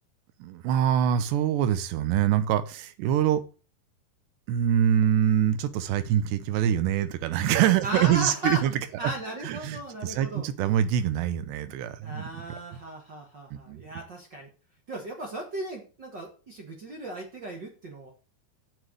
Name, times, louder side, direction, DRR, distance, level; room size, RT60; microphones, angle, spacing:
voice 1, 0.4-3.4 4.5-9.1 9.4-12.6 13.5-13.8, right 10 dB, 85° right, 3.1 m, -25 dB
voice 2, 7.8-8.6 9.0-10.5 12.0-14.5 14.9-18.1, right 1 dB, 65° right, 1.1 m, -36 dB
7.1 x 6.4 x 7.7 m
omnidirectional pair, 4.8 m